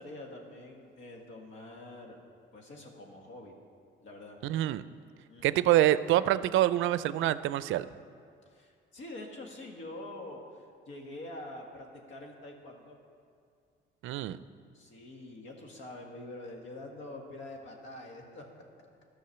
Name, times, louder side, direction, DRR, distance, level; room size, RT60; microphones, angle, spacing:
voice 1, 0.0-2.2 2.5-3.5 4.0-4.4 5.3-5.6 8.5-13.0 14.7-18.4, left 1 dB, 75° left, 1 dB, 1.8 m, -45 dB
voice 2, 4.4-4.8 5.4-7.9 14.0-14.4, right 13 dB, 80° right, 15 dB, 0.4 m, -26 dB
13.0 x 6.3 x 6.8 m, 2.3 s
cardioid pair, 90°, 20 cm